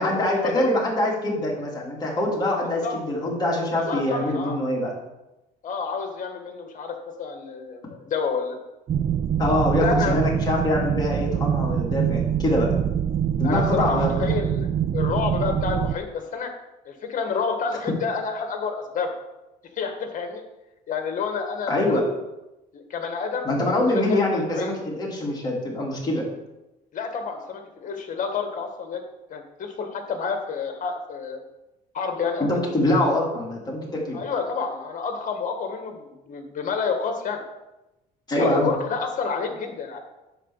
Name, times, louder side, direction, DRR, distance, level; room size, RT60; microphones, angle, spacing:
voice 1, 0.0-4.9 9.4-12.7 13.4-14.1 21.7-22.0 23.4-26.2 32.4-34.2 38.3-38.7, left 1 dB, 25° left, -3 dB, 3.2 m, -24 dB
voice 2, 3.7-4.6 5.6-8.6 9.8-10.2 13.4-16.5 16.9-19.2 19.8-20.4 20.9-22.0 22.7-23.5 23.9-24.7 26.9-29.0 29.3-31.4 31.9-32.5 34.1-37.4 38.4-40.0, left 5 dB, 50° left, 5 dB, 1.8 m, -29 dB
sound 1, 8.9-16.0, right 9 dB, 35° right, 0.4 m, -24 dB
10.0 x 4.1 x 7.4 m, 0.97 s
cardioid pair, 110°, 17 cm